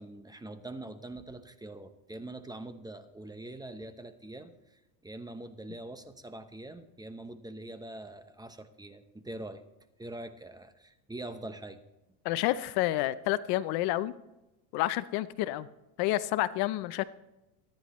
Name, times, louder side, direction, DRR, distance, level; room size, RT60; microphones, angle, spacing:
voice 1, 0.0-9.6 10.0-11.8, right 1 dB, 10° right, 9 dB, 0.9 m, -44 dB
voice 2, 12.2-14.1 14.7-15.7 16.0-17.0, left 15 dB, 60° left, 15 dB, 0.7 m, -29 dB
24.5 x 10.0 x 3.1 m, 0.99 s
supercardioid pair, 110°, 45 cm